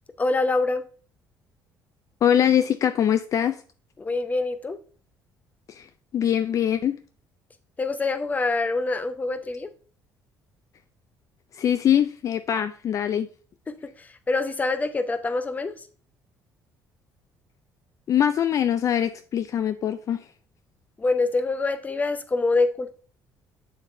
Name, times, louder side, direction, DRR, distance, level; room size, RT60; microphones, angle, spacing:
voice 1, 0.2-0.8 4.0-4.8 7.8-9.7 13.7-13.8 14.3-15.7 21.0-22.9, left 3 dB, 20° left, 11 dB, 0.8 m, -25 dB
voice 2, 2.2-3.6 5.7-5.9 6.1-7.0 11.5-13.3 18.1-20.2, left 9 dB, 50° left, 11 dB, 0.4 m, -23 dB
7.3 x 7.0 x 2.7 m, 0.41 s
cardioid pair, 105°, 7 cm